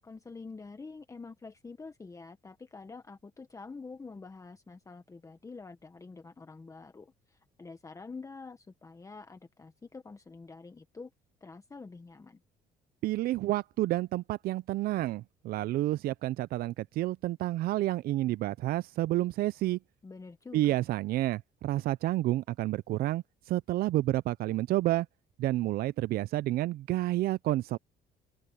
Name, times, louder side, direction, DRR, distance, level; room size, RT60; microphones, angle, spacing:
voice 1, 0.0-11.1 11.4-12.4 20.0-20.8, left 4 dB, 20° left, 1.1 m, -47 dB
voice 2, 13.0-19.8 20.5-25.1 25.4-27.8, right 15 dB, 65° right, 0.4 m, -30 dB
open air
cardioid pair, 110°, 17 cm